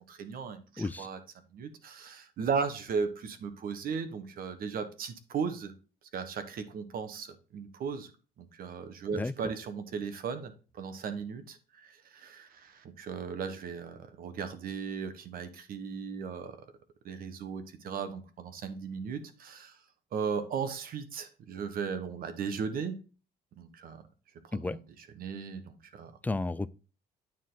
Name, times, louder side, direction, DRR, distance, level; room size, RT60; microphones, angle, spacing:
voice 1, 0.1-1.2 1.5-5.7 6.1-8.1 8.4-16.6 17.0-19.8 20.1-22.9 23.5-24.0 24.4-24.7 25.2-26.1, right 6 dB, 60° right, 1.3 m, -36 dB
voice 2, 0.8-1.1 9.1-9.3 24.5-24.8 26.2-26.7, left 2 dB, 10° left, 0.4 m, -32 dB
9.1 x 4.7 x 3.8 m
cardioid pair, 110°, 17 cm